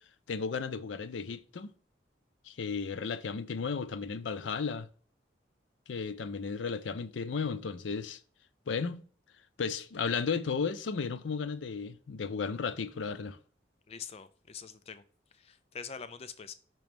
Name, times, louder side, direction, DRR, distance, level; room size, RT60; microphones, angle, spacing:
voice 1, 0.3-1.7 2.5-4.9 5.9-8.2 8.7-9.0 9.6-13.4, left 5 dB, 85° left, 0.5 m, -34 dB
voice 2, 13.9-15.0 15.4-16.5, left 6 dB, 35° left, 0.4 m, -44 dB
6.0 x 3.0 x 5.1 m
head